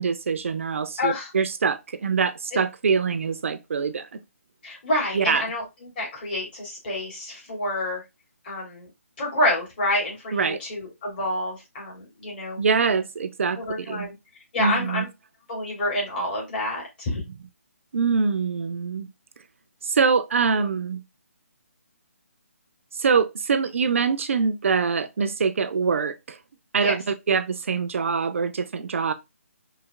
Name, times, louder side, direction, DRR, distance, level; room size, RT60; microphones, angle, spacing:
voice 1, 0.0-4.1 5.1-5.4 10.3-10.6 12.6-14.1 14.6-15.1 17.9-19.1 19.8-21.0 23.0-26.4 26.7-29.1, right 5 dB, 60° right, 0.4 m, -24 dB
voice 2, 1.0-1.3 4.6-8.0 8.4-8.9 9.2-12.6 13.5-14.1 14.5-15.1 15.5-17.2 26.8-27.0, left 1 dB, 40° left, 2.4 m, -28 dB
4.0 x 2.8 x 2.3 m
figure-of-eight pair, 150°, 8 cm